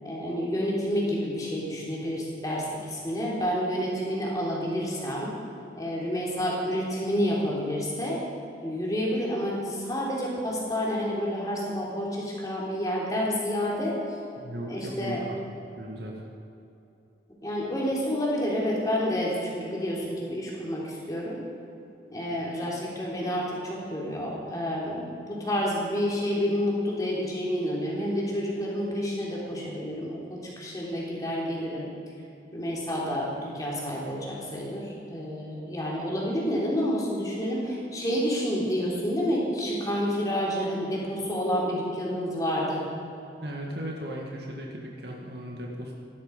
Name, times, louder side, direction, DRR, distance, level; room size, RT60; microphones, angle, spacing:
voice 1, 0.0-5.3 5.7-8.2 8.6-14.2 14.7-15.2 17.4-21.4 22.1-31.9 32.5-42.9, equal, 20° left, -4 dB, 3.5 m, -29 dB
voice 2, 14.4-15.4 15.8-16.3 43.4-45.9, equal, 70° right, -1 dB, 1.9 m, -36 dB
16.5 x 12.0 x 5.3 m, 2.8 s
head